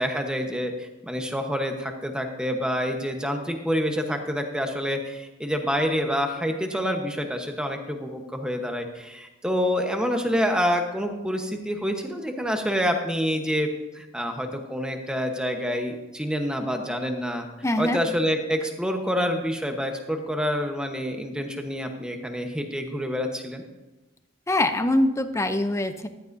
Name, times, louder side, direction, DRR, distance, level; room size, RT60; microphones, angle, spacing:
voice 1, 0.0-13.7 13.9-17.4 17.8-23.6, equal, 5° right, 4 dB, 1.0 m, -27 dB
voice 2, 17.6-18.0 24.5-26.1, left 1 dB, 15° left, 9 dB, 0.6 m, -23 dB
14.5 x 12.5 x 2.7 m, 1.1 s
head